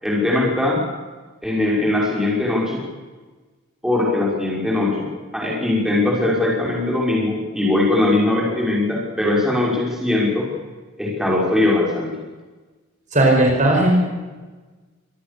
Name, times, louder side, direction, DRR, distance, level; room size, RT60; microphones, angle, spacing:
voice 1, 0.0-0.8 1.4-2.8 3.8-5.1 5.3-10.5 11.0-12.2, left 2 dB, ahead, -3 dB, 5.9 m, -20 dB
voice 2, 13.1-14.0, right 1 dB, 35° right, 1 dB, 5.1 m, -16 dB
25.0 x 19.0 x 7.0 m, 1.3 s
head